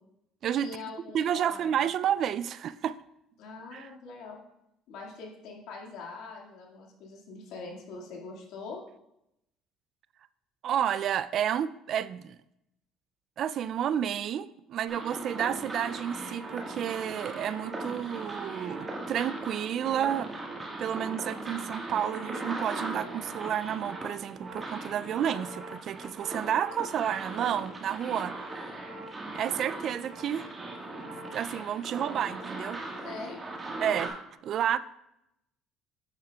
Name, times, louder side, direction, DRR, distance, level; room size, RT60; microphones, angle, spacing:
voice 1, 0.6-1.8 3.4-4.4 4.9-8.8 33.0-33.5 33.8-34.1, left 4 dB, 75° left, 2.0 m, -43 dB
voice 2, 1.1-2.9 3.7-3.9 10.6-12.4 13.4-20.3 20.8-28.3 29.3-30.5 31.3-33.1 33.8-34.1 34.4-34.8, right 9 dB, 55° right, 0.3 m, -30 dB
sound 1, 14.9-34.1, right 2 dB, 25° right, 1.5 m, -39 dB
8.7 x 8.6 x 2.3 m
supercardioid pair, 95°, 0 cm